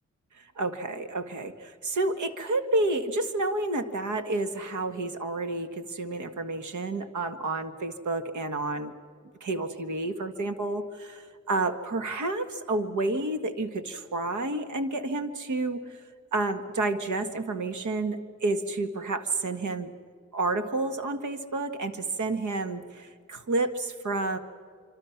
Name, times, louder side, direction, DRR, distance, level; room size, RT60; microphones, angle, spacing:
voice 1, 0.6-8.9 9.4-15.8 16.3-19.9 20.3-24.4, right 2 dB, 80° right, 7 dB, 1.7 m, -30 dB
26.0 x 26.0 x 5.9 m, 2.1 s
wide cardioid pair, 125°, 29 cm